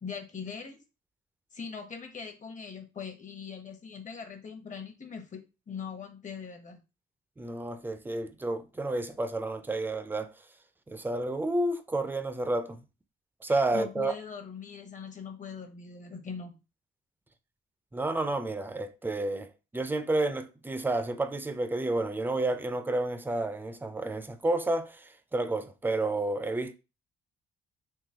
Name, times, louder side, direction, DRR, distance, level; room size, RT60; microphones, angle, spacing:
voice 1, 0.0-0.8 1.5-6.8 13.5-16.6, left 6 dB, 40° left, 0.9 m, -41 dB
voice 2, 7.4-10.3 10.9-12.8 13.4-14.1 17.9-26.7, right 2 dB, 10° right, 0.4 m, -30 dB
3.8 x 2.7 x 2.8 m
cardioid pair, 90°, 20 cm